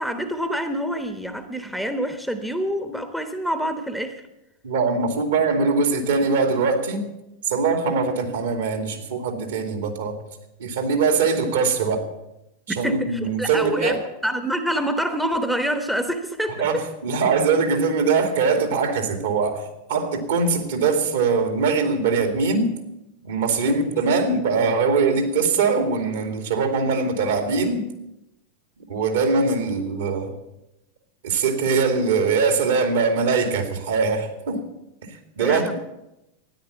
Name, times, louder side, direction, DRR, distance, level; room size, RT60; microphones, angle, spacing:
voice 1, 0.0-4.2 12.7-14.0 14.2-16.8 23.7-23.8 35.4-35.7, equal, ahead, 8 dB, 1.1 m, -26 dB
voice 2, 4.6-7.1 7.5-10.2 10.6-12.0 12.7-14.0 16.6-22.8 23.2-27.9 28.9-30.3 31.2-34.6 35.0-35.7, right 4 dB, 60° right, 6 dB, 2.5 m, -22 dB
13.0 x 10.0 x 8.3 m, 0.90 s
figure-of-eight pair, 90°, 0 cm